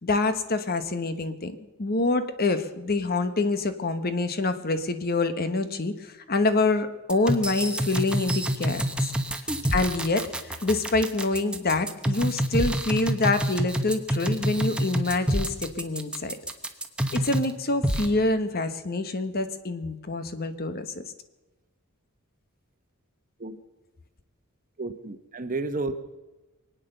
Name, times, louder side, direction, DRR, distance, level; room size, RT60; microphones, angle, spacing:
voice 1, 0.0-9.1 9.7-16.4 17.1-21.0, left 2 dB, 45° left, 11 dB, 1.1 m, -26 dB
sound 1, 7.1-17.5 17.8-18.1, right 1 dB, 5° right, 1.1 m, -27 dB
voice 2, 24.8-25.9, right 3 dB, 40° right, 9 dB, 1.1 m, -31 dB
23.0 x 9.2 x 6.7 m, 1.1 s
head